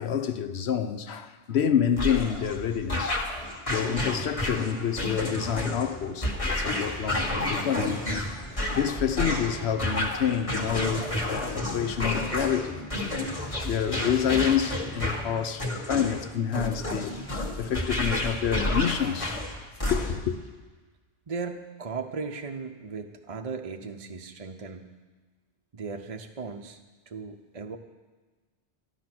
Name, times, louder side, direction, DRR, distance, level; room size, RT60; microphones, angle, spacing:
voice 1, 0.0-3.2 3.7-8.2 8.6-12.8 13.6-17.2 17.6-19.4 19.9-20.4, left 8 dB, 70° left, 1.0 m, -28 dB
sound 1, 2.0-20.3, left 1 dB, 30° left, 1.6 m, -30 dB
sound 2, 5.3-17.2, right 1 dB, 10° left, 1.2 m, -48 dB
voice 2, 21.3-24.9 25.7-26.8 27.1-27.8, right 4 dB, 35° right, 0.7 m, -37 dB
13.5 x 12.0 x 6.0 m
omnidirectional pair, 1.1 m